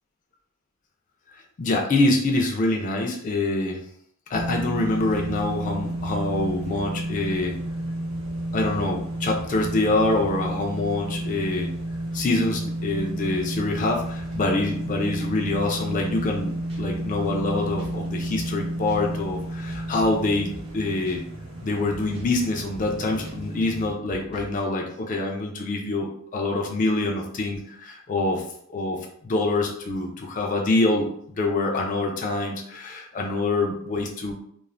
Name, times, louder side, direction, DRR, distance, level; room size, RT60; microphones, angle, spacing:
voice 1, 1.6-3.8 4.3-7.6 8.5-11.7 12.1-21.2 21.6-28.4 28.7-29.0 29.2-31.1 31.4-34.3, left 2 dB, 40° left, 1 dB, 0.4 m, -25 dB
sound 1, 4.3-23.9, right 1 dB, 80° right, 0.7 m, -31 dB
sound 2, 16.1-16.4 16.7-16.8 17.8-18.1 18.3-18.6 18.9-19.0 19.7-20.2 20.5-20.8 21.1-21.2 21.9-22.4 22.7-23.0 23.2-23.4 24.1-24.6, equal, 25° right, 0.6 m, -45 dB
2.4 x 2.1 x 3.2 m, 0.67 s
head